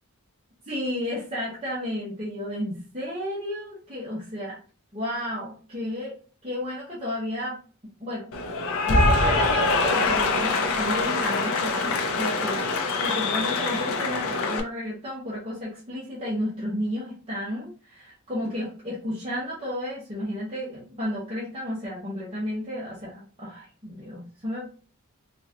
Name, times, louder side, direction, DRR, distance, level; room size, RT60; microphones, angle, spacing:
voice 1, 0.7-4.6 4.9-6.1 6.4-7.6 8.0-8.3 8.9-24.7, left 1 dB, 25° right, -8 dB, 1.0 m, -32 dB
Cheering / Applause, 8.3-14.6, left 3 dB, 70° left, 0.6 m, -24 dB
3.8 x 2.4 x 2.8 m, 0.39 s
head